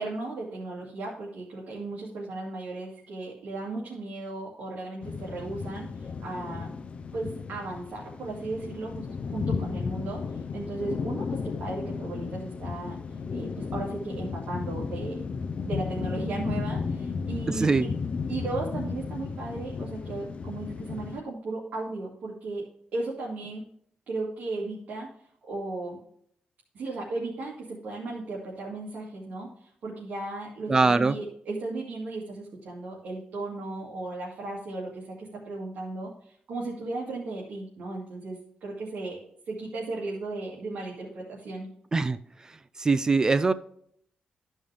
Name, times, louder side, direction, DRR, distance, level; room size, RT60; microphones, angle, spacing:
voice 1, 0.0-6.8 7.1-13.0 13.3-15.3 15.6-17.9 18.3-22.7 22.9-23.6 24.1-25.1 25.5-26.0 26.7-41.7, right 2 dB, 65° right, -5 dB, 2.2 m, -36 dB
sound 1, 5.0-21.2, left 5 dB, 40° left, 0.5 m, -34 dB
voice 2, 17.5-17.9 30.7-31.2 41.9-42.2 42.8-43.5, right 3 dB, 20° right, 13 dB, 0.3 m, -22 dB
13.0 x 5.4 x 3.4 m, 0.67 s
wide cardioid pair, 165°, 3 cm